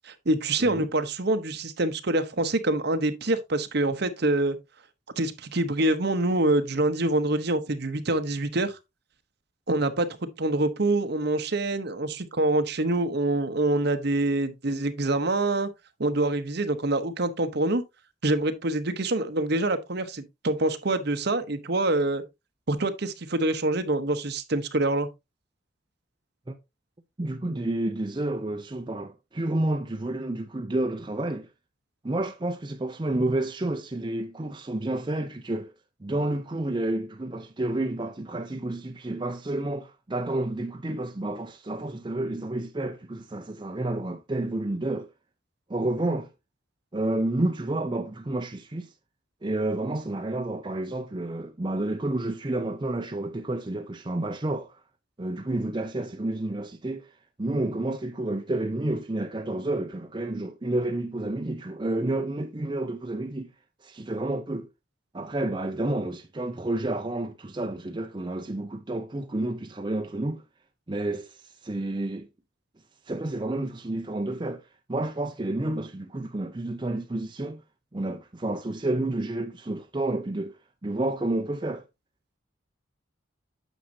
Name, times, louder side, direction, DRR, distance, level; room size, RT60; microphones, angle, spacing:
voice 1, 0.0-4.6 5.2-8.8 9.7-10.1 10.4-15.7 16.0-17.8 18.2-22.2 22.7-25.1, right 2 dB, 55° right, 0.9 m, -25 dB
voice 2, 27.2-31.5 32.0-35.7 36.0-45.1 45.7-46.3 46.9-48.9 49.4-54.8 55.2-63.5 63.8-64.7 65.1-70.4 70.9-72.3 73.0-77.6 77.9-81.8, right 2 dB, 25° right, 0.5 m, -30 dB
9.1 x 6.3 x 2.7 m
head